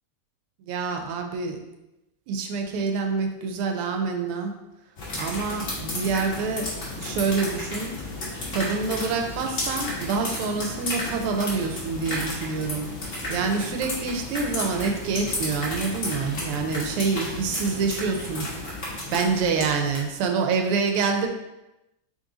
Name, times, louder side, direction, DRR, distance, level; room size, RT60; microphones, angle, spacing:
voice 1, 0.7-1.6 2.3-4.5 5.2-6.7 7.0-7.9 8.5-18.5 19.1-21.3, right 4 dB, 90° right, 4 dB, 1.5 m, -26 dB
sound 1, 5.0-20.2, left 1 dB, 40° left, 1.2 m, -33 dB
3.8 x 3.3 x 3.8 m, 0.96 s
omnidirectional pair, 2.4 m